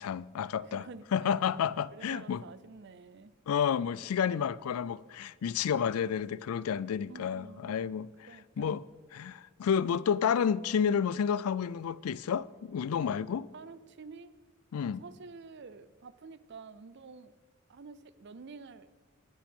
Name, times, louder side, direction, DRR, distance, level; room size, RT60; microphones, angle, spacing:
voice 1, 0.0-0.8 1.1-2.4 3.5-8.1 8.6-8.8 9.1-13.5 14.7-15.0, left 7 dB, 85° left, 0.4 m, -30 dB
voice 2, 0.6-3.4 7.1-7.8 8.3-8.8 13.5-14.4 15.0-17.3 17.7-18.9, right 4 dB, 55° right, 0.5 m, -49 dB
20.0 x 7.6 x 3.7 m
head